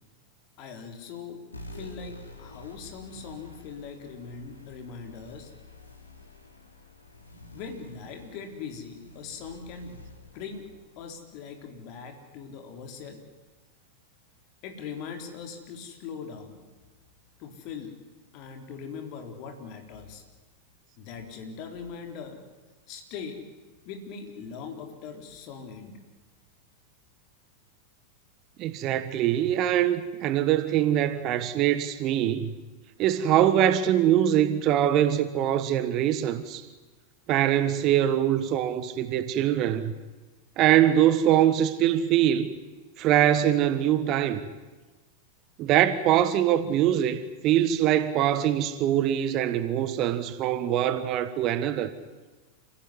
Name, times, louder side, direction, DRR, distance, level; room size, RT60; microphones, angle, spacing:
voice 1, 0.6-1.4 1.7-5.5 7.5-10.0 10.3-10.7 11.0-13.2 14.6-16.7 17.4-18.0 18.3-20.2 21.0-22.4 22.9-23.4 23.9-26.0, left 6 dB, 45° left, 4.0 m, -41 dB
sound 1, 1.5-12.4, left 2 dB, 80° left, 3.4 m, -49 dB
voice 2, 28.6-32.5 33.0-36.6 37.3-39.9 40.6-42.5 43.0-44.4 45.6-51.9, right 11 dB, 35° right, 1.3 m, -23 dB
28.5 x 16.0 x 9.9 m
figure-of-eight pair, 90°, 0 cm